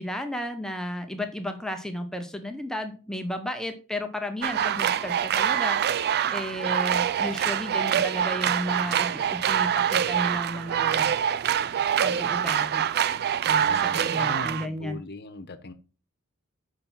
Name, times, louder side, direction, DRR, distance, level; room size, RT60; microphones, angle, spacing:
voice 1, 0.0-5.9 6.3-11.1 12.0-12.8 13.5-15.0, left 1 dB, 5° left, 6 dB, 0.8 m, -33 dB
sound 1, 4.4-14.7, right 9 dB, 45° right, 0.4 m, -25 dB
voice 2, 13.6-15.7, left 3 dB, 50° left, 9 dB, 1.1 m, -39 dB
7.5 x 5.7 x 4.1 m, 0.34 s
head